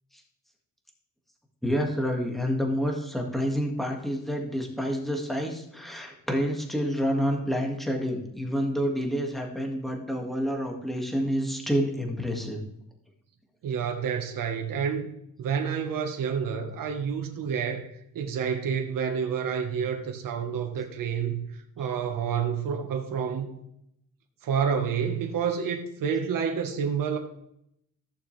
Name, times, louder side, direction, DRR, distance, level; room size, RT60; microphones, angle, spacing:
voice 1, 1.6-12.6, equal, ahead, 1 dB, 1.9 m, -28 dB
voice 2, 13.6-15.1 15.4-21.5 21.8-23.5 24.4-27.2, right 7 dB, 70° right, 4 dB, 1.3 m, -29 dB
14.5 x 6.7 x 3.3 m, 0.76 s
cardioid pair, 95°, 35 cm